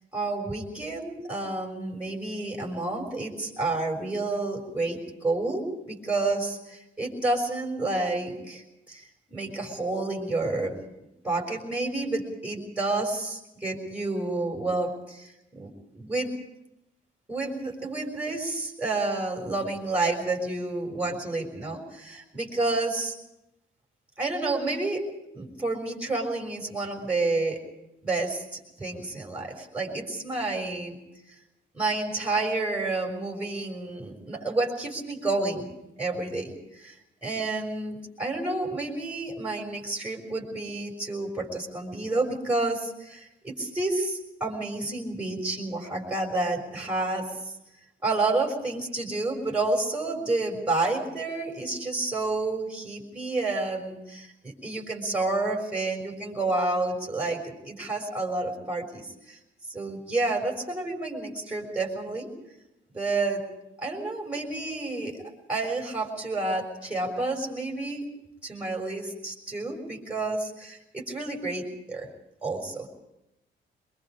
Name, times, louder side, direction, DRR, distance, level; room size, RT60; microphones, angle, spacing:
voice 1, 0.1-10.8 11.2-16.3 17.3-23.1 24.2-25.0 25.3-27.6 28.0-28.4 28.8-31.0 31.7-35.7 36.0-36.9 37.2-47.3 48.0-59.4 59.7-62.3 62.9-63.4 63.8-65.2 65.5-68.0 68.4-72.1 72.4-72.9, right 2 dB, 5° right, 0 dB, 6.3 m, -30 dB
23.5 x 23.0 x 5.1 m, 0.88 s
cardioid pair, 90°, 20 cm